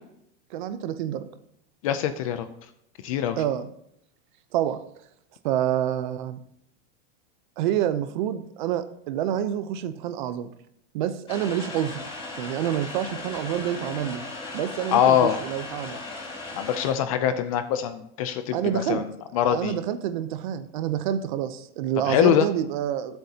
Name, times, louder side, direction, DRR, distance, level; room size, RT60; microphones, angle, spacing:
voice 1, 0.5-1.3 3.4-3.7 4.5-4.8 5.4-6.4 7.6-10.5 10.9-12.0 12.4-14.2 14.5-16.0 18.5-19.0 19.4-23.2, right 10 dB, 40° right, 12 dB, 0.7 m, -27 dB
voice 2, 1.8-2.5 3.0-3.4 14.9-15.4 16.5-19.8 22.0-22.5, left 9 dB, 30° left, 10 dB, 0.5 m, -23 dB
sound 1, 11.3-16.9, left 2 dB, 15° left, 1.9 m, -37 dB
20.0 x 8.0 x 2.9 m, 0.76 s
supercardioid pair, 175°, 36 cm